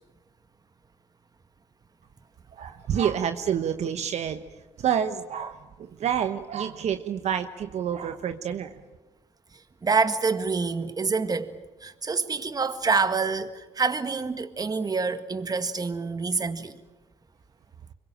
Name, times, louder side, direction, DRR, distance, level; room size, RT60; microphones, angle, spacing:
voice 1, 2.5-4.4 4.8-8.7, right 8 dB, 65° right, 1.1 m, -28 dB
voice 2, 9.8-11.5 11.8-16.7, right 4 dB, 30° right, 1.8 m, -26 dB
25.0 x 22.5 x 8.9 m
supercardioid pair, 70°, 13 cm